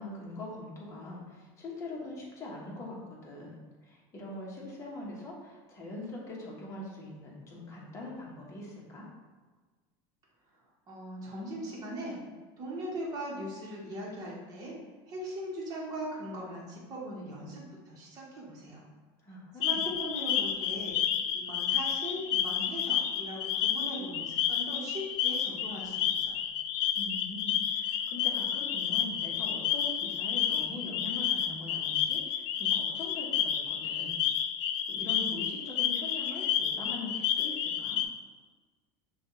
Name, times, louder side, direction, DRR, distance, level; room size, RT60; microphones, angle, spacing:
voice 1, 0.0-9.1 19.2-19.9 26.9-34.2 34.9-38.0, left 2 dB, 25° left, -4 dB, 1.1 m, -42 dB
voice 2, 10.9-12.2 12.6-14.7 15.1-18.8 19.6-26.4, right 1 dB, 30° right, -4 dB, 1.2 m, -40 dB
sound 1, 19.6-38.0, left 9 dB, 50° left, 0.4 m, -30 dB
6.1 x 2.4 x 3.1 m, 1.4 s
supercardioid pair, 150°, 12 cm